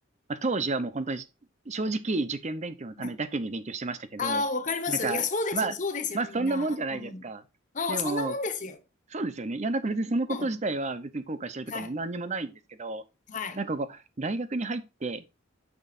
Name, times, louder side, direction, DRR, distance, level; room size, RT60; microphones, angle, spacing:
voice 1, 0.3-1.2 1.7-4.4 4.9-5.2 5.5-5.7 6.1-7.4 7.9-8.3 9.1-12.5 12.8-13.0 13.6-15.2, right 3 dB, 35° right, 0.7 m, -31 dB
voice 2, 4.2-7.2 7.7-8.8 10.3-10.5 11.7-11.9 13.3-13.6, left 4 dB, 40° left, 1.0 m, -31 dB
9.0 x 6.1 x 2.5 m
head